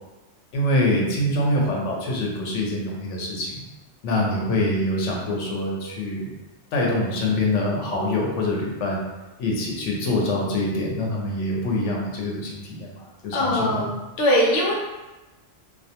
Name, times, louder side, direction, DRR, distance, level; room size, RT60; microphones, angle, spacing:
voice 1, 0.5-3.7 4.0-6.3 6.7-9.0 9.4-13.9, left 1 dB, 90° left, -2 dB, 0.9 m, -25 dB
voice 2, 13.3-13.9 14.2-14.7, equal, 60° left, -3 dB, 0.7 m, -20 dB
2.2 x 2.2 x 2.7 m, 1.1 s
omnidirectional pair, 1.2 m